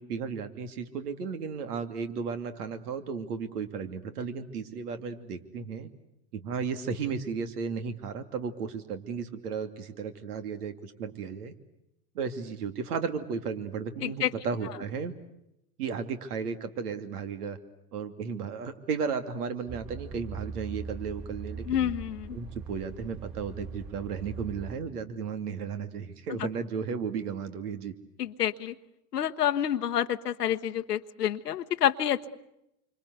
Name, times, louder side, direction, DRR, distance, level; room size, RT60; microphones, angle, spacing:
voice 1, 0.0-5.9 6.3-11.5 12.1-15.1 15.8-17.6 17.9-21.9 22.3-27.9, right 6 dB, 75° right, 9 dB, 2.8 m, -34 dB
voice 2, 14.0-14.3 21.7-22.4 28.2-28.7 29.1-32.3, left 10 dB, 90° left, 7 dB, 1.1 m, -28 dB
sound 1, 19.7-24.8, right 4 dB, 45° right, 6.1 m, -41 dB
27.5 x 25.5 x 8.2 m, 0.84 s
hypercardioid pair, 100°, 46 cm